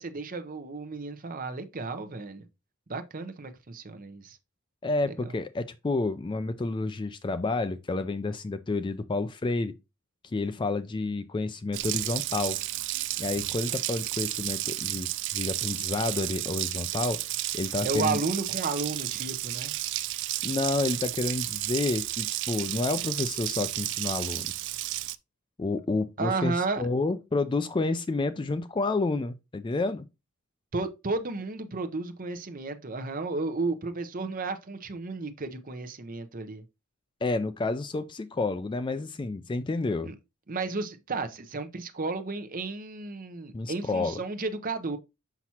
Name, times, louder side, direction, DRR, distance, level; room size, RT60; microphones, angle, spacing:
voice 1, 0.0-2.5 2.9-4.4 5.0-5.3 17.8-19.7 26.2-26.8 30.7-36.6 40.0-40.1 40.5-45.0, right 3 dB, 40° right, 0.7 m, -33 dB
voice 2, 4.8-9.7 10.3-12.6 13.2-18.2 20.4-24.5 25.6-30.0 37.2-40.1 43.5-44.2, left 3 dB, 20° left, 0.3 m, -30 dB
Water tap faucet, 11.7-25.1, right 16 dB, 55° right, 0.4 m, -32 dB
5.9 x 5.9 x 2.8 m
head